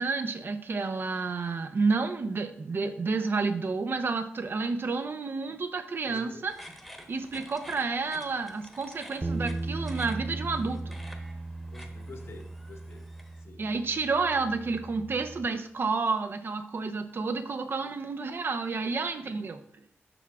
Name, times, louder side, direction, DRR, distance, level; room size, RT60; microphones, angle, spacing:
voice 1, 0.0-6.5 7.1-11.0 13.6-19.6, right 4 dB, 50° right, 8 dB, 0.8 m, -30 dB
voice 2, 6.1-6.4 11.7-13.1 13.4-13.7 17.7-17.9 18.7-18.9 19.2-19.4, left 3 dB, 60° left, 4 dB, 1.3 m, -49 dB
sound 1, 6.5-13.4, equal, ahead, 1.1 m, -49 dB
sound 2, 9.2-15.5, right 2 dB, 20° right, 0.3 m, -37 dB
7.1 x 5.8 x 3.5 m, 0.62 s
cardioid pair, 80°, 5 cm